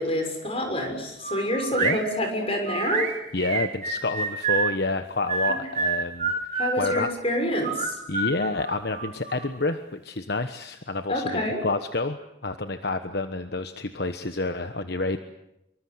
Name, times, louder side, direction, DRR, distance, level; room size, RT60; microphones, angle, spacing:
voice 1, 0.0-3.1 5.5-5.6 6.6-8.0 11.1-11.6, left 1 dB, 30° left, 4 dB, 6.6 m, -27 dB
sound 1, 1.2-2.0 2.7-4.7 5.3-7.1 7.6-9.5, right 5 dB, 40° right, 4.0 m, -28 dB
voice 2, 3.3-6.3 6.8-7.1 8.1-15.2, left 2 dB, 60° left, 8 dB, 1.2 m, -29 dB
26.5 x 24.0 x 8.0 m, 0.86 s
head